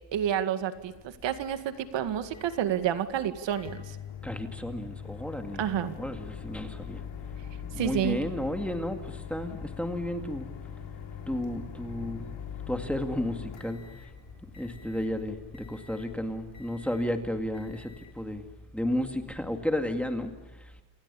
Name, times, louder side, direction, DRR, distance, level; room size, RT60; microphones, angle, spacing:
voice 1, 0.1-4.0 5.6-6.0 7.8-8.2, right 10 dB, 70° right, 10 dB, 2.1 m, -29 dB
Microwave oven, 0.7-18.7, left 9 dB, 70° left, 3.6 m, -43 dB
voice 2, 4.2-5.6 6.0-7.0 7.6-10.6 11.3-12.3 12.7-13.8 14.6-18.5 18.7-20.3 20.6-20.7, left 1 dB, 5° left, 5 dB, 2.1 m, -32 dB
28.5 x 27.5 x 7.0 m, 1.1 s
cardioid pair, 175°, 46 cm